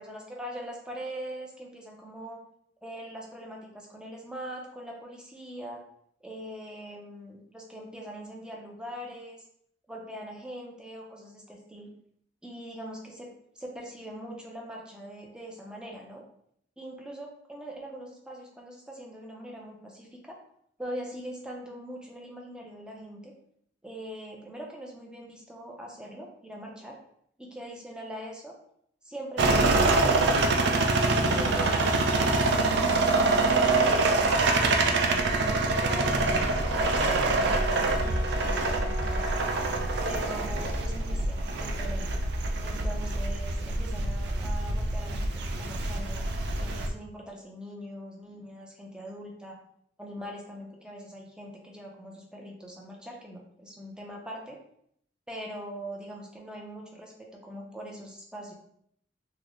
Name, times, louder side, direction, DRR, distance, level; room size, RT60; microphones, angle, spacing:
voice 1, 0.0-2.4 2.8-5.8 6.2-9.4 9.9-11.9 12.4-16.2 16.8-20.3 20.8-23.3 23.8-27.0 27.4-28.5 29.0-32.7 33.4-39.3 40.0-42.1 42.6-46.3 46.5-49.6 50.0-54.6 55.3-58.5, equal, 5° right, -1 dB, 0.5 m, -42 dB
sound 1, 29.4-46.9, right 2 dB, 60° right, 0.4 m, -25 dB
Wind instrument woodwind instrument, 35.7-40.5, equal, 60° left, 0.6 m, -40 dB
3.8 x 2.1 x 3.0 m, 0.69 s
head